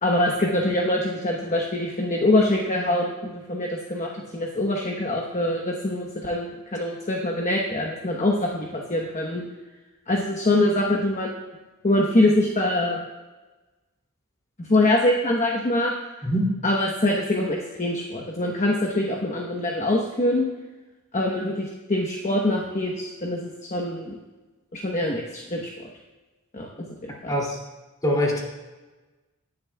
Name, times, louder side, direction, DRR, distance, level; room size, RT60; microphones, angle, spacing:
voice 1, 0.0-9.5 10.1-11.4 11.8-13.0 14.6-15.9 16.6-20.5 21.1-24.2 24.7-25.9 26.5-26.7 27.0-27.3, left 1 dB, 35° left, 0 dB, 1.0 m, -24 dB
voice 2, 27.3-27.6 28.0-28.4, equal, 15° left, -2 dB, 2.6 m, -23 dB
18.5 x 10.5 x 2.3 m, 1.2 s
head